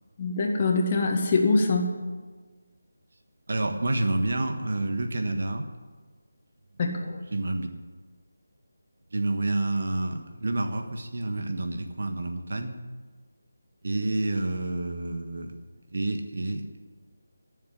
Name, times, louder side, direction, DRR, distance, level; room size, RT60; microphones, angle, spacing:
voice 1, 0.2-2.0 6.8-7.2, left 3 dB, 35° left, 2 dB, 1.8 m, -24 dB
voice 2, 3.5-5.7 7.3-7.7 9.1-12.8 13.8-15.5 15.9-16.7, right 2 dB, 60° right, 5 dB, 1.5 m, -28 dB
13.5 x 7.4 x 9.6 m, 1.4 s
figure-of-eight pair, 160°, 0 cm